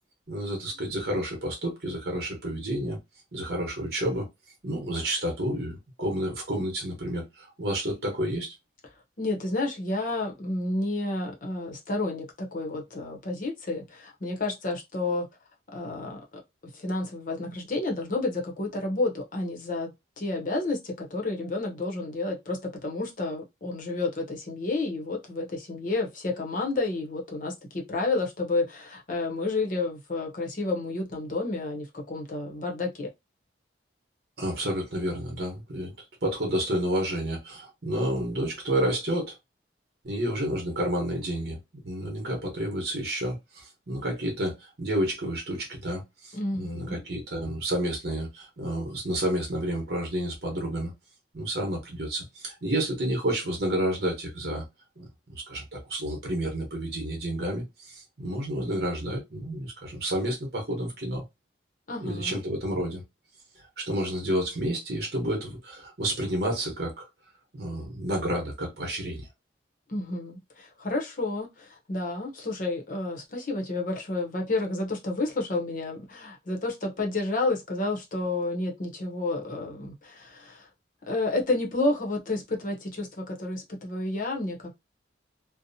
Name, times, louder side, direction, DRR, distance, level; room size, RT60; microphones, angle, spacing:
voice 1, 0.3-3.0 3.3-4.3 4.6-8.5 34.4-39.4 40.0-50.9 51.3-54.6 55.0-61.2 62.0-63.0 63.5-67.1 67.5-69.3, right 1 dB, 60° right, 1.0 m, -30 dB
voice 2, 9.2-15.3 15.7-16.2 16.7-19.9 20.2-33.1 46.3-47.0 61.9-62.4 69.9-80.7 81.0-84.7, left 2 dB, 45° left, 0.7 m, -30 dB
2.7 x 2.0 x 2.7 m
head